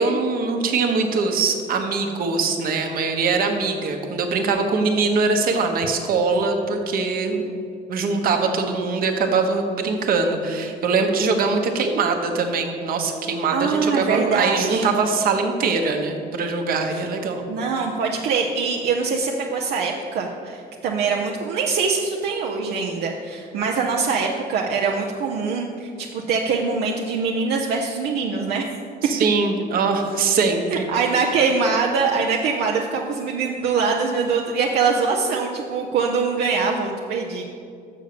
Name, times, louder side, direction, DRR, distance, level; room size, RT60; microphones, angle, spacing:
voice 1, 0.0-7.5 7.9-17.4 29.0-30.9, right 4 dB, 60° right, 4 dB, 1.1 m, -22 dB
voice 2, 13.5-14.9 16.9-17.0 17.5-28.7 30.7-37.4, right 5 dB, 75° right, 0 dB, 0.7 m, -23 dB
6.6 x 6.5 x 6.7 m, 2.5 s
cardioid pair, 110°, 17 cm